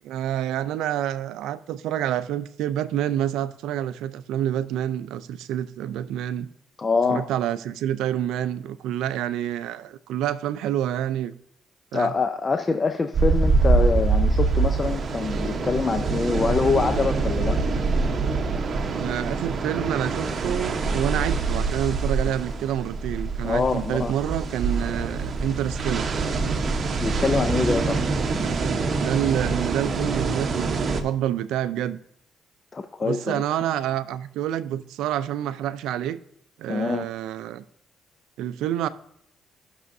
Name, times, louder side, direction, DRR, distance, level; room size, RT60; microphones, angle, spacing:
voice 1, 0.0-6.5 7.1-11.3 11.9-12.1 18.9-26.1 28.6-32.0 33.0-36.2 36.6-37.6 38.4-38.9, right 11 dB, 90° right, 0.4 m, -28 dB
voice 2, 6.8-7.3 11.9-17.6 23.4-24.1 27.0-28.0 32.7-33.4 36.7-37.1, left 4 dB, 30° left, 0.5 m, -25 dB
sound 1, 13.1-31.0, right 4 dB, 45° right, 0.9 m, -25 dB
15.0 x 6.2 x 2.7 m
cardioid pair, 90°, 0 cm